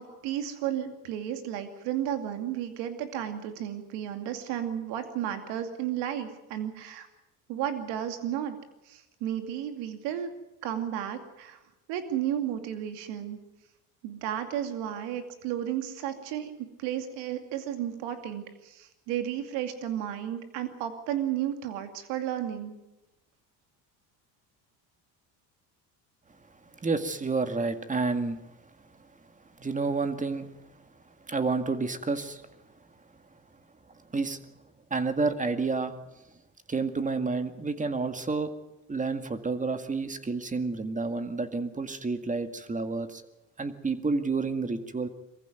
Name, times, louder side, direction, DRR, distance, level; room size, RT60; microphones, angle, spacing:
voice 1, 0.0-7.1 7.5-8.6 8.9-10.3 10.6-11.6 11.9-13.4 14.0-22.8, right 10 dB, 85° right, 7 dB, 2.6 m, -33 dB
voice 2, 26.8-28.4 29.6-30.5 31.3-32.4 34.1-34.4 34.9-35.9 36.7-38.5 38.9-43.2 43.6-45.1, right 4 dB, 20° right, 9 dB, 2.0 m, -29 dB
23.0 x 15.0 x 9.3 m, 0.96 s
cardioid pair, 105°, 41 cm